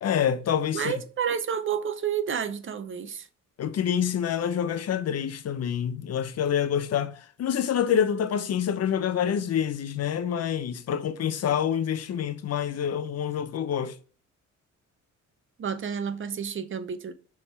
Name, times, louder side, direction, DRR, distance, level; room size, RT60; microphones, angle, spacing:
voice 1, 0.0-0.9 3.6-14.0, left 8 dB, 55° left, 0.7 m, -27 dB
voice 2, 0.7-3.3 15.6-17.1, right 7 dB, 40° right, 0.7 m, -30 dB
6.5 x 3.7 x 4.3 m
cardioid pair, 90°, 30 cm